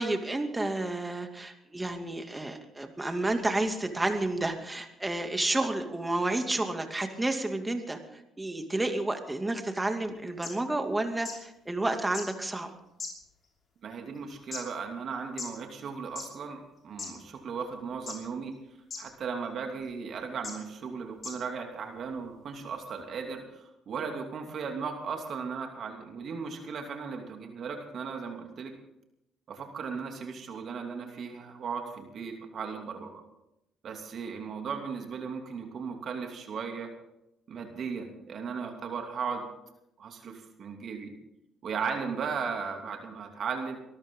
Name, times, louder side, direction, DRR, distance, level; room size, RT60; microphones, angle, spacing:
voice 1, 0.0-12.7, right 2 dB, 15° right, 5 dB, 2.5 m, -31 dB
sound 1, 10.1-10.2 10.4-10.5 11.2-11.3 12.1-12.2 13.0-13.5 14.1-14.6 15.4-15.5 16.1-16.3 17.0-17.1 18.1-18.4 18.9-19.0 19.8-19.9 20.4-20.5 21.2-21.3 22.2-22.3, left 4 dB, 45° left, 5.5 m, -37 dB
voice 2, 13.8-18.5 19.0-28.7 29.5-33.2 33.8-36.9 37.5-39.4 40.0-41.1 41.6-43.8, right 5 dB, 60° right, 3 dB, 2.8 m, -36 dB
24.0 x 13.5 x 3.9 m, 0.85 s
supercardioid pair, 60°, 0 cm